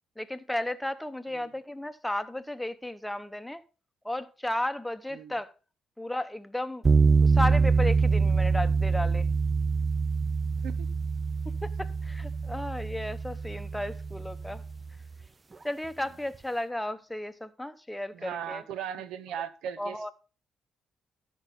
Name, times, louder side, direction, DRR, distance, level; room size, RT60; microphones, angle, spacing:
voice 1, 0.2-3.6 4.0-5.5 6.0-6.9 7.2-9.3 11.6-14.6 15.6-18.6 19.8-20.1, left 1 dB, 5° left, 0.8 m, -34 dB
sound 1, 6.8-15.0, right 4 dB, 30° right, 0.4 m, -25 dB
voice 2, 18.1-20.1, right 9 dB, 90° right, 0.8 m, -38 dB
13.0 x 5.4 x 4.1 m
cardioid pair, 90°, 0 cm